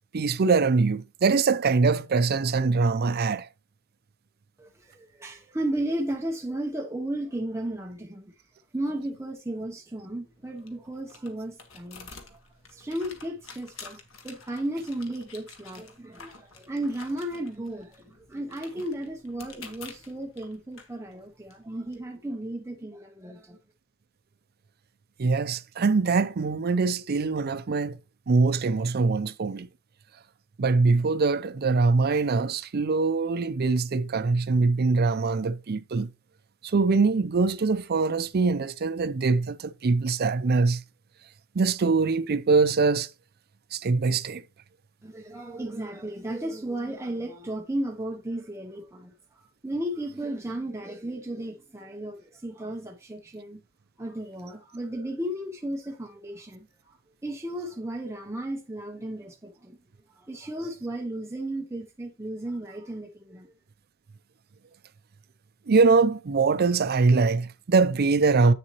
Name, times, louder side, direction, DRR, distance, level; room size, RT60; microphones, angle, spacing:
voice 1, 0.1-3.5 25.2-28.0 28.3-29.7 30.6-36.1 36.6-40.8 41.5-43.1 43.7-44.4 65.7-68.5, right 4 dB, 50° right, 0.5 m, -23 dB
voice 2, 4.6-8.3 8.7-12.4 12.7-14.0 14.2-23.6 45.0-49.1 49.6-53.6 54.0-57.0 57.2-59.8 60.2-63.5, right 1 dB, 15° right, 0.8 m, -34 dB
sound 1, 10.3-22.0, left 5 dB, 75° left, 1.5 m, -49 dB
8.5 x 6.8 x 3.0 m
head